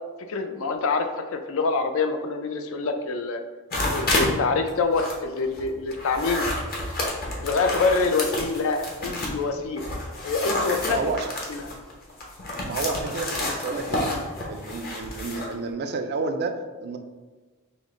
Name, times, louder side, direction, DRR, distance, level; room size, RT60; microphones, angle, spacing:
voice 1, 0.3-3.4 3.9-6.5 7.4-9.9 10.2-11.0 11.5-11.7, left 4 dB, 65° left, 6 dB, 0.4 m, -26 dB
sound 1, 3.7-4.3 4.7-9.4 9.8-15.5, left 1 dB, 45° left, 0.8 m, -29 dB
voice 2, 10.9-11.3 12.7-14.0 14.5-17.0, right 3 dB, 50° right, 6 dB, 0.4 m, -30 dB
5.0 x 2.1 x 3.6 m, 1.3 s
head